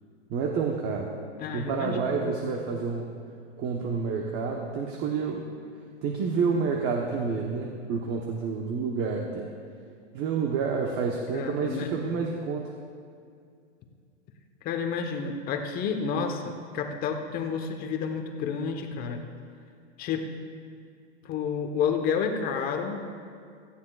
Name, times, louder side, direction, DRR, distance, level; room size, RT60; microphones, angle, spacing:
voice 1, 0.3-1.1 1.5-3.2 3.6-5.5 6.0-9.5 10.1-12.7, right 5 dB, 30° right, 1 dB, 1.0 m, -29 dB
voice 2, 1.4-2.4 11.3-12.2 14.6-19.2 20.0-20.2 21.2-23.0, left 6 dB, 25° left, 5 dB, 1.0 m, -30 dB
17.5 x 14.5 x 2.4 m, 2.3 s
hypercardioid pair, 145°, 35 cm